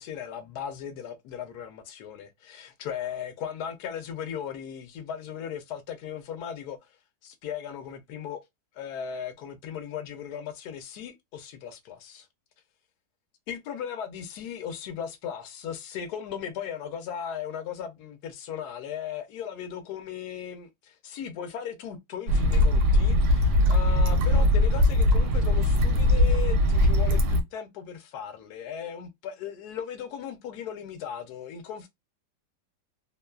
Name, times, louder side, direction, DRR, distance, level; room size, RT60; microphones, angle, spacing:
voice 1, 0.0-6.9 7.2-8.4 8.7-12.3 13.5-31.9, left 8 dB, 75° left, 1.0 m, -37 dB
sound 1, 22.3-27.4, left 1 dB, 80° right, 1.2 m, -21 dB
2.9 x 2.3 x 2.2 m
omnidirectional pair, 1.8 m